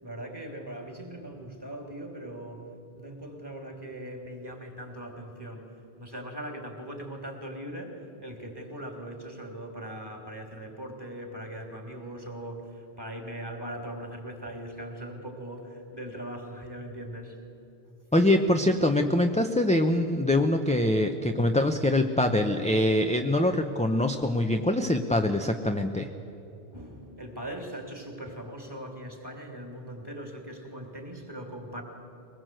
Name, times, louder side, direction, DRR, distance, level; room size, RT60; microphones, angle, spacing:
voice 1, 0.0-2.7 2.9-17.4 26.7-31.8, right 1 dB, 20° right, 2 dB, 3.3 m, -40 dB
voice 2, 18.1-26.1, left 1 dB, 5° left, 5 dB, 0.7 m, -24 dB
23.5 x 20.0 x 7.8 m, 2.9 s
omnidirectional pair, 1.1 m